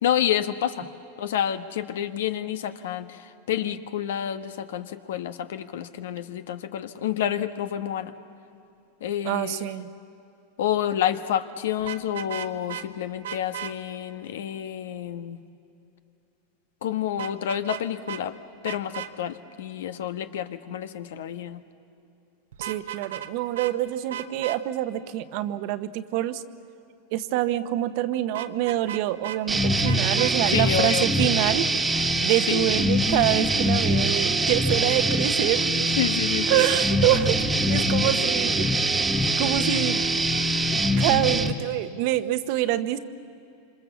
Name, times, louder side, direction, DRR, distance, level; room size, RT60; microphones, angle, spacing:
voice 1, 0.0-0.9 1.2-8.1 9.0-9.7 10.6-15.4 16.8-18.3 18.6-21.6 30.5-31.1 32.5-32.7 36.0-36.6, left 10 dB, 80° left, 9 dB, 1.2 m, -29 dB
voice 2, 9.2-9.9 22.6-26.4 27.1-31.8 32.2-35.9 36.5-37.4 37.7-38.9 39.4-40.0 41.0-43.0, right 13 dB, 60° right, 11 dB, 1.1 m, -26 dB
Vehicle horn car horn honking, 11.8-12.8 13.2-13.7 17.2-17.8 18.1-18.2 18.6-19.1 22.5-23.3 23.5-23.7 24.1-24.6 28.3-29.4 29.8-30.3, right 10 dB, 85° right, 1.1 m, -35 dB
sound 1, 29.5-41.5, right 1 dB, 10° right, 1.6 m, -23 dB
26.5 x 26.0 x 7.2 m, 2.7 s
supercardioid pair, 130°, 0 cm